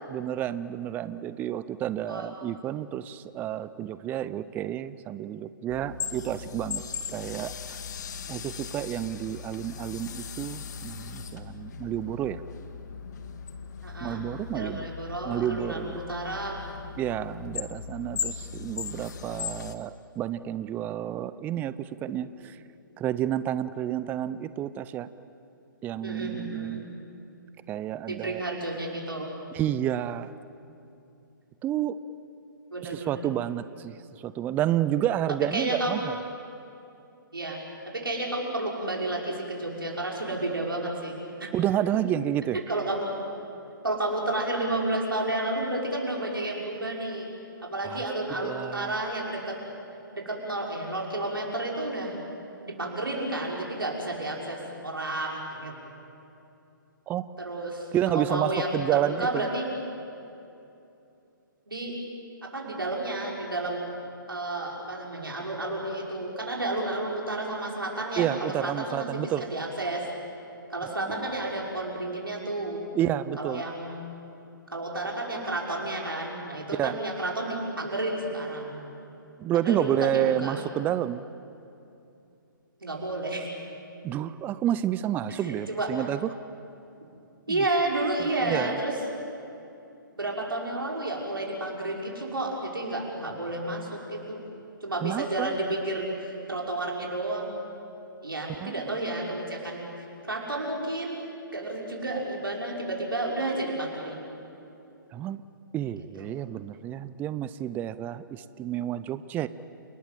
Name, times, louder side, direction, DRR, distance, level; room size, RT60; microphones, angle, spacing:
voice 1, 0.1-6.8 7.1-7.8 8.3-12.4 14.0-14.9 15.2-16.0 17.0-22.3 23.0-25.1 25.8-26.8 27.7-28.4 29.5-30.3 31.6-32.0 32.9-34.0 34.2-36.2 41.5-42.6 47.8-48.0 48.4-48.9 57.1-57.3 57.9-59.4 68.2-69.4 72.9-73.6 76.7-77.0 79.4-81.2 84.0-86.3 87.5-87.6 88.4-88.8 95.0-95.6 98.6-98.7 105.1-105.4 105.7-109.5, right 11 dB, 15° right, 15 dB, 0.5 m, -30 dB
sound 1, 5.7-19.7, left 7 dB, 55° left, 1.7 m, -38 dB
voice 2, 13.8-14.2 14.5-16.6 26.0-26.9 28.1-29.3 32.7-33.2 35.5-36.0 37.3-37.6 37.9-41.5 42.5-43.1 43.8-47.3 47.7-49.6 50.1-52.2 52.6-55.7 57.4-59.7 61.7-62.0 62.4-63.9 64.3-70.0 70.7-72.8 73.4-74.0 74.7-78.8 79.5-80.7 82.8-83.5 85.3-85.9 87.5-89.0 90.2-94.4 94.8-97.6 98.2-99.9 100.2-101.2 101.5-104.3 106.2-106.4, right 2 dB, 85° right, -2 dB, 5.7 m, -31 dB
29.5 x 20.0 x 7.6 m, 2.7 s
figure-of-eight pair, 130°, 11 cm